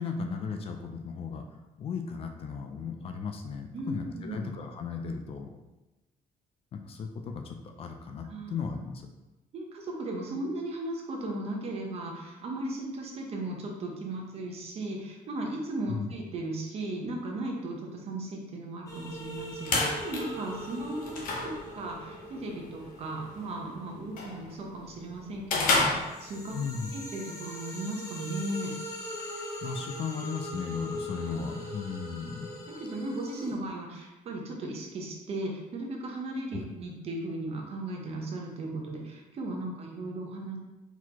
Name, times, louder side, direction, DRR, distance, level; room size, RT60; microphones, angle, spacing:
voice 1, 0.0-1.4 1.8-5.5 6.7-9.1 15.9-16.1 26.5-26.9 29.6-32.5, left 5 dB, 40° left, 4 dB, 0.4 m, -36 dB
voice 2, 3.7-4.6 8.2-8.6 9.5-26.6 26.9-28.7 32.8-40.6, right 1 dB, 45° right, 0 dB, 0.9 m, -36 dB
sound 1, 18.9-25.2 25.7-33.5, equal, 20° left, 0.8 m, -41 dB
sound 2, 19.3-26.7, left 3 dB, 70° left, 1.0 m, -33 dB
4.6 x 4.0 x 2.9 m, 1.0 s
cardioid pair, 170°, 15 cm